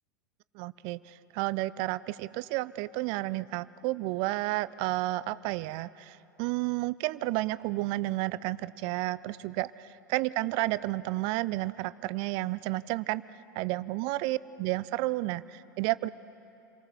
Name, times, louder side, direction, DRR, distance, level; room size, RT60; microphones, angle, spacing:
voice 1, 0.6-1.0 1.3-13.2 13.6-16.1, right 19 dB, 50° right, 17 dB, 0.5 m, -31 dB
28.5 x 19.0 x 6.9 m, 2.9 s
hypercardioid pair, 90°, 10 cm